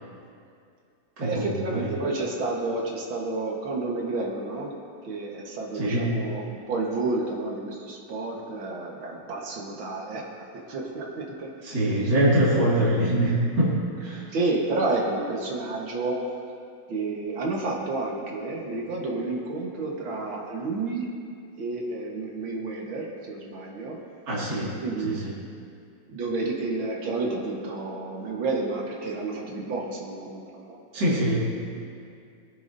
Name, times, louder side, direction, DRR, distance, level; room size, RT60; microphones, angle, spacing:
voice 1, 1.2-4.7 5.0-12.4 14.3-16.3 16.9-21.1 21.6-24.0 24.6-25.2 26.1-30.8, right 3 dB, 90° right, -1 dB, 2.2 m, -30 dB
voice 2, 5.7-6.2 11.6-14.3 24.3-24.8 25.0-25.3 30.9-31.3, right 1 dB, 60° right, -8 dB, 2.9 m, -23 dB
21.0 x 9.4 x 2.7 m, 2.4 s
omnidirectional pair, 2.1 m